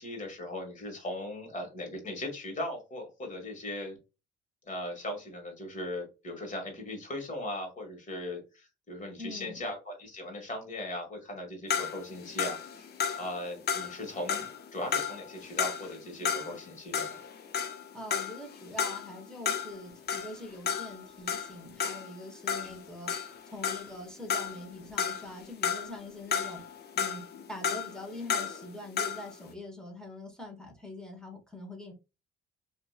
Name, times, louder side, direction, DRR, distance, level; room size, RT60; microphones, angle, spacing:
voice 1, 0.0-4.0 4.6-12.9 13.2-17.2 22.6-22.8, left 1 dB, 40° left, 1.6 m, -38 dB
voice 2, 9.2-9.7 17.9-26.6 27.0-31.9, left 1 dB, 5° left, 1.2 m, -44 dB
sound 1, 11.7-16.7 16.9-24.0 24.3-26.0 26.3-29.3, left 7 dB, 55° left, 0.6 m, -33 dB
2.9 x 2.7 x 2.3 m
cardioid pair, 90°, 20 cm